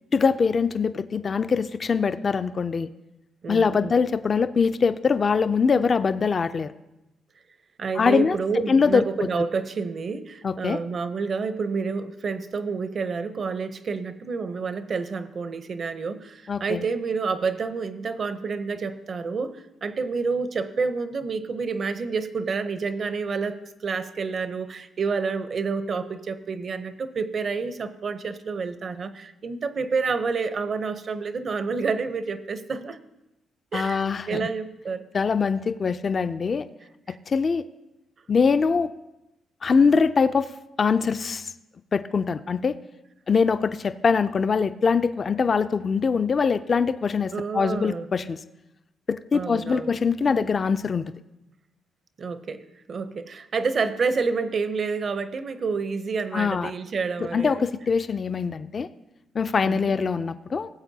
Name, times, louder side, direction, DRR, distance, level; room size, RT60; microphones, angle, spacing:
voice 1, 0.1-2.9 3.5-6.7 8.0-8.4 8.7-9.0 10.4-10.8 16.5-16.8 33.7-34.5 35.1-36.7 37.3-37.6 38.3-38.9 39.6-40.5 40.8-41.5 41.9-42.8 43.3-48.4 49.1-51.0 56.3-56.7 57.2-58.9 59.3-60.7, left 5 dB, 35° left, 11 dB, 0.3 m, -23 dB
voice 2, 3.4-4.0 7.8-33.0 33.7-35.0 37.1-37.2 47.3-48.1 49.3-50.0 52.2-57.6 59.6-59.9, right 4 dB, 45° right, 12 dB, 0.6 m, -29 dB
18.0 x 7.9 x 2.7 m, 0.95 s
cardioid pair, 110°, 0 cm